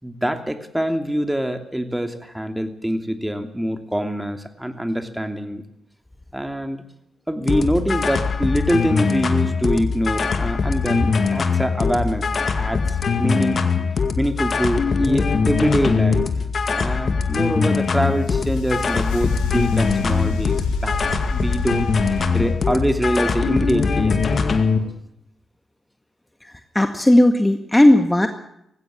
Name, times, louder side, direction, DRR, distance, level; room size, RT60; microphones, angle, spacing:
voice 1, 0.0-5.6 6.3-6.8 7.3-12.3 12.5-13.6 14.2-16.3 16.8-21.0 21.3-24.5, equal, 10° right, 7 dB, 2.8 m, -24 dB
sound 1, 7.5-24.8, left 5 dB, 55° left, 2.1 m, -22 dB
sound 2, 18.0-22.5, left 3 dB, 90° left, 3.3 m, -29 dB
voice 2, 26.4-28.3, left 1 dB, 15° left, 7 dB, 1.8 m, -16 dB
19.0 x 16.5 x 8.7 m, 0.78 s
hypercardioid pair, 40°, 0 cm